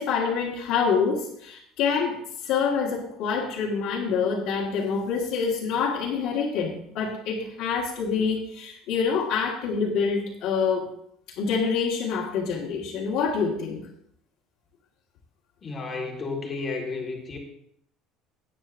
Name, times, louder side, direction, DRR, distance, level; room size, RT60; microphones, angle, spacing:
voice 1, 0.0-10.9 11.4-13.9, left 5 dB, 50° left, -5 dB, 1.6 m, -26 dB
voice 2, 15.6-17.4, left 3 dB, 20° left, 1 dB, 1.8 m, -32 dB
17.0 x 9.2 x 2.6 m, 0.71 s
cardioid pair, 180°, 0 cm